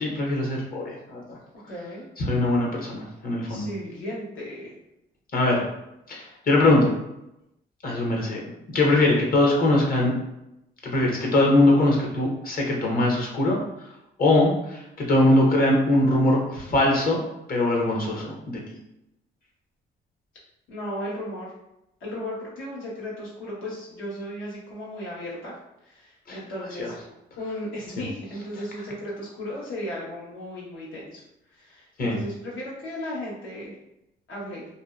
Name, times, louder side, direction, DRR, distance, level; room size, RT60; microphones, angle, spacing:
voice 1, 0.0-1.4 2.2-3.7 5.3-5.6 6.1-6.9 7.8-10.1 10.8-13.6 14.2-17.2 17.5-18.3 26.3-26.4 26.8-26.9 32.0-32.2, left 2 dB, 45° left, -2 dB, 0.7 m, -21 dB
voice 2, 1.7-2.1 3.5-4.7 20.7-21.5 22.0-25.6 25.8-26.9 27.4-31.2 31.5-33.7 34.3-34.7, left 1 dB, 80° left, -6 dB, 1.1 m, -35 dB
2.6 x 2.0 x 2.3 m, 0.87 s
cardioid pair, 90°, 20 cm